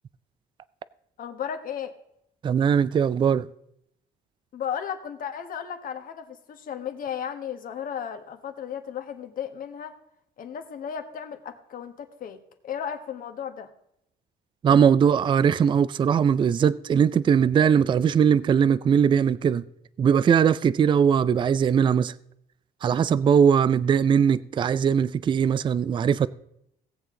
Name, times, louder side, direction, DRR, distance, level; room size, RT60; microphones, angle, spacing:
voice 1, 1.2-1.9 4.5-9.9 10.4-13.7, left 8 dB, 55° left, 1.4 m, -35 dB
voice 2, 2.4-3.5 14.6-19.6 20.0-22.1 22.8-26.3, right 7 dB, 30° right, 0.4 m, -20 dB
17.5 x 7.6 x 3.8 m
cardioid pair, 110°, 17 cm